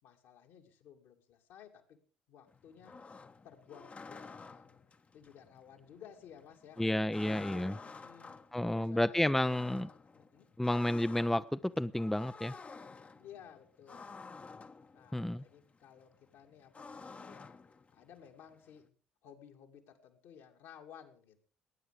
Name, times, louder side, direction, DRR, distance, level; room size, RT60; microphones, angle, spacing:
voice 1, 0.0-2.0 2.3-3.0 3.4-4.8 5.1-10.5 13.2-14.2 14.9-19.0 19.2-21.4, left 8 dB, 65° left, 2.4 m, -56 dB
sound 1, 2.5-18.9, left 4 dB, 30° left, 1.1 m, -52 dB
voice 2, 6.8-7.7 8.5-9.9 10.6-12.5 15.1-15.4, left 1 dB, 5° left, 0.6 m, -31 dB
19.0 x 9.8 x 5.0 m
hypercardioid pair, 50°, 5 cm